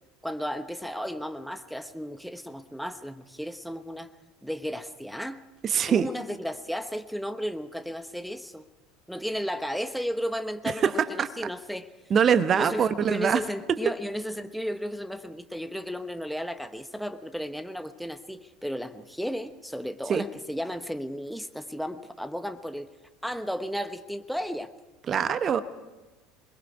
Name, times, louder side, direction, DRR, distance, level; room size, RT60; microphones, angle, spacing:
voice 1, 0.2-4.1 4.4-5.4 5.8-8.7 9.1-11.9 12.5-22.9 23.2-24.7, equal, ahead, 9 dB, 1.1 m, -34 dB
voice 2, 5.6-6.1 10.8-10.9 11.2-11.3 12.1-13.4 20.1-20.3 25.1-25.6, right 7 dB, 35° right, 12 dB, 1.0 m, -23 dB
27.0 x 21.0 x 4.8 m, 1.2 s
figure-of-eight pair, 70°, 0 cm